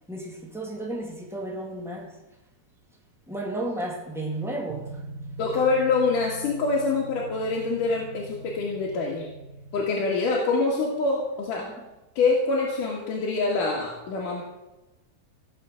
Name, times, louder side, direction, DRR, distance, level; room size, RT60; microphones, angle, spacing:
voice 1, 0.1-2.2 3.3-5.0 5.5-5.6 11.6-11.8, right 1 dB, ahead, 1.3 m, -33 dB
sound 1, 4.7-9.8, right 2 dB, 75° right, 2.5 m, -41 dB
voice 2, 5.4-9.3 9.7-11.7 12.2-14.4, left 3 dB, 60° left, 3.2 m, -25 dB
16.5 x 7.0 x 7.6 m
omnidirectional pair, 4.4 m